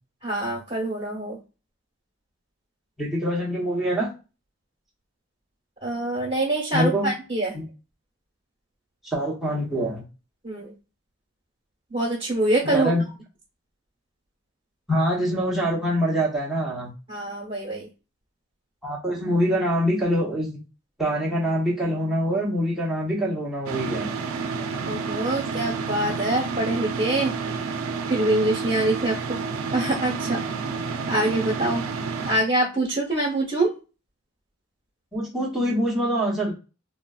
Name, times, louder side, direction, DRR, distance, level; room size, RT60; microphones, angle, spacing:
voice 1, 0.2-1.4 5.8-7.6 10.4-10.7 11.9-12.9 17.1-17.9 24.8-27.3 28.1-29.4 29.7-30.4 31.1-31.8 32.2-33.7, right 1 dB, 25° right, -5 dB, 1.0 m, -25 dB
voice 2, 3.0-4.1 6.7-7.1 7.5-7.6 9.0-10.0 12.6-13.0 14.9-16.9 18.8-20.6 21.0-24.1 35.1-36.5, equal, ahead, -6 dB, 0.9 m, -24 dB
sound 1, 23.7-32.4, right 5 dB, 80° right, 0.5 m, -30 dB
3.8 x 2.1 x 2.3 m, 0.32 s
head